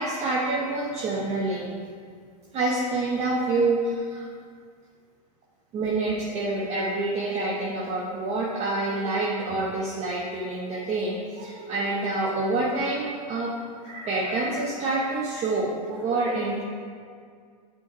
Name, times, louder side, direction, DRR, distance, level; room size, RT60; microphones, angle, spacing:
voice 1, 0.0-1.7 2.5-4.3 5.7-13.5 13.8-16.6, right 2 dB, 30° right, -4 dB, 1.0 m, -27 dB
8.8 x 4.8 x 3.1 m, 2.1 s
hypercardioid pair, 105°, 21 cm